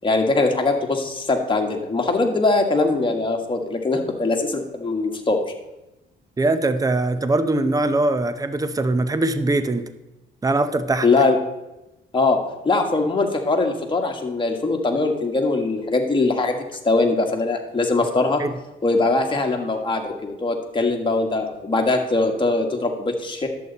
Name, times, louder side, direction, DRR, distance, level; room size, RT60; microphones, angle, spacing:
voice 1, 0.0-5.4 11.0-11.4 12.1-12.4 12.7-18.4 18.8-23.5, left 3 dB, 25° left, 2 dB, 1.7 m, -21 dB
voice 2, 6.4-9.8 10.4-11.1 18.4-18.5, right 2 dB, 20° right, 11 dB, 0.7 m, -21 dB
11.0 x 8.0 x 4.1 m, 0.96 s
cardioid pair, 90°, 20 cm